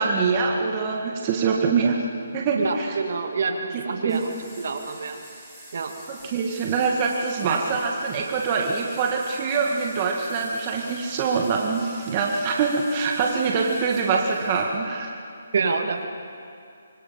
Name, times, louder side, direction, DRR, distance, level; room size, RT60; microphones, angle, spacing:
voice 1, 0.0-2.0 2.3-3.0 3.7-4.2 6.1-15.1, right 5 dB, 25° right, 0 dB, 2.0 m, -24 dB
voice 2, 2.5-5.2 5.7-5.9 15.5-16.1, right 4 dB, 55° right, 5 dB, 2.4 m, -27 dB
sound 1, 4.1-14.6, right 1 dB, 5° right, 5.0 m, -46 dB
25.5 x 25.5 x 5.9 m, 2.4 s
hypercardioid pair, 170°, 0 cm